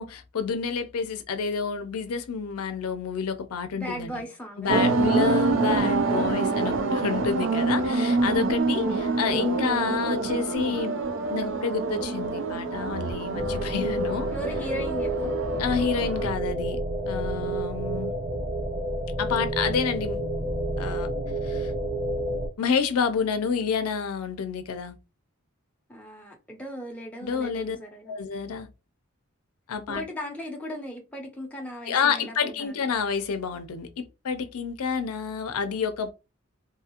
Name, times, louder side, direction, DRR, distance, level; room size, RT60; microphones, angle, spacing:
voice 1, 0.0-4.1 4.6-11.0 11.3-14.3 15.6-16.8 17.1-18.1 19.2-20.2 20.8-21.1 21.4-21.7 22.6-24.9 27.2-27.8 28.1-28.7 29.7-30.0 31.9-36.1, left 6 dB, 85° left, 0.5 m, -29 dB
voice 2, 3.8-4.8 8.4-8.9 14.3-15.3 25.9-28.2 29.9-32.8, equal, 5° left, 0.6 m, -37 dB
sound 1, 4.7-16.3, right 3 dB, 60° right, 0.4 m, -26 dB
sound 2, 13.3-22.5, right 1 dB, 30° right, 0.8 m, -29 dB
2.7 x 2.4 x 2.8 m
head